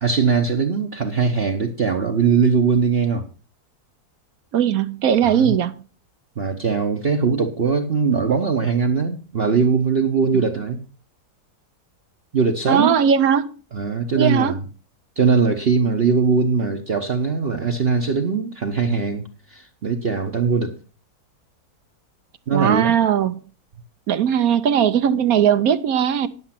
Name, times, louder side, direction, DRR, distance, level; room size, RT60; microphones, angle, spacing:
voice 1, 0.0-3.3 5.2-5.5 6.4-10.8 12.3-12.9 13.7-14.6 15.2-20.7 22.5-23.0, right 5 dB, 45° right, 1.0 m, -20 dB
voice 2, 4.5-5.8 10.3-10.4 12.7-13.5 14.1-14.6 22.5-23.4 24.1-26.3, right 8 dB, 65° right, 1.1 m, -19 dB
11.0 x 7.0 x 5.8 m
omnidirectional pair, 1.7 m